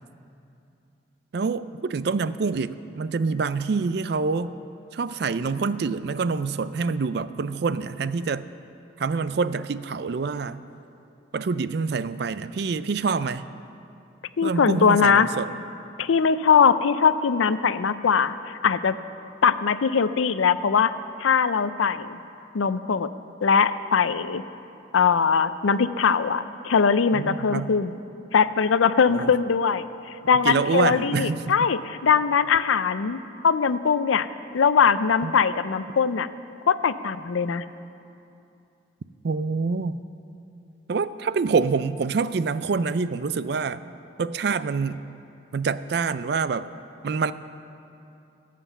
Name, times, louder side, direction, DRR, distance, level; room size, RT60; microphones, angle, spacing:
voice 1, 1.3-4.5 4.9-8.4 9.0-10.6 11.3-13.4 14.4-15.5 27.1-27.7 29.1-29.3 30.2-31.7 35.2-35.3 39.2-40.0 40.9-43.8 44.2-45.0 45.5-46.7 47.0-47.3, right 4 dB, 55° right, 15 dB, 0.4 m, -26 dB
voice 2, 14.4-15.3 16.0-18.9 19.4-20.9 21.2-22.2 22.5-23.1 23.4-24.4 24.9-28.0 28.3-29.9 30.3-34.3 34.5-36.3 36.7-37.6, left 6 dB, 90° left, 14 dB, 0.5 m, -21 dB
16.5 x 7.6 x 7.1 m, 2.7 s
head